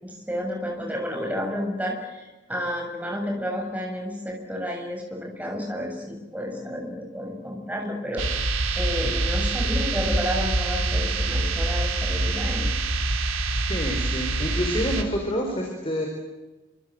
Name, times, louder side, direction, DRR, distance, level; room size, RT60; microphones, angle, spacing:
voice 1, 0.0-8.2 8.8-12.6, equal, 10° right, 1 dB, 7.1 m, -31 dB
sound 1, 8.2-15.0, right 2 dB, 80° right, 3.7 m, -25 dB
voice 2, 13.7-16.1, equal, 25° left, 2 dB, 4.5 m, -28 dB
28.0 x 26.5 x 7.8 m, 1.2 s
head